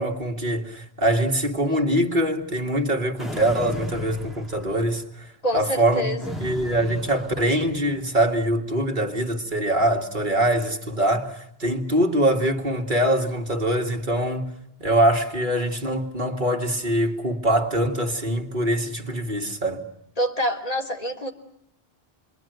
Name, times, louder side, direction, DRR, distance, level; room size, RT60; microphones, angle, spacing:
voice 1, 0.0-14.5 14.8-19.8, right 1 dB, 50° right, 2.2 m, -23 dB
sound 1, 3.2-5.1 6.2-8.0, equal, ahead, 2.3 m, -37 dB
voice 2, 5.4-6.4 20.2-21.3, equal, 35° left, 3.1 m, -26 dB
28.0 x 23.0 x 9.2 m
omnidirectional pair, 1.0 m